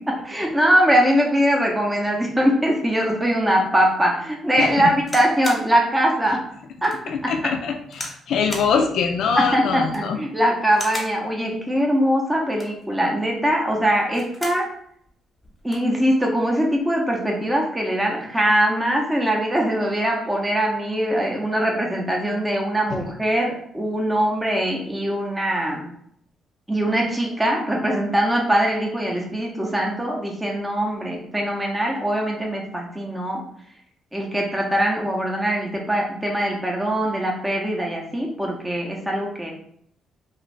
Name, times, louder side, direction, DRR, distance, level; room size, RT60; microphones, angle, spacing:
voice 1, 0.0-6.4 6.8-7.6 8.7-8.9 9.4-14.7 15.6-25.9 26.7-33.4 34.1-39.5, equal, 10° right, -1 dB, 0.6 m, -22 dB
voice 2, 4.6-4.9 7.1-10.2, left 6 dB, 70° left, 4 dB, 0.3 m, -23 dB
sound 1, 5.0-5.7 6.2-6.3 6.8-7.0 7.9-8.2 8.5-8.7 9.8-10.2 10.7-11.2 12.4-12.8 14.0-14.7 15.1-15.2 15.4-15.9 16.7-17.0, left 1 dB, 20° left, 0.9 m, -35 dB
2.5 x 2.5 x 3.1 m, 0.69 s
cardioid pair, 90°, 0 cm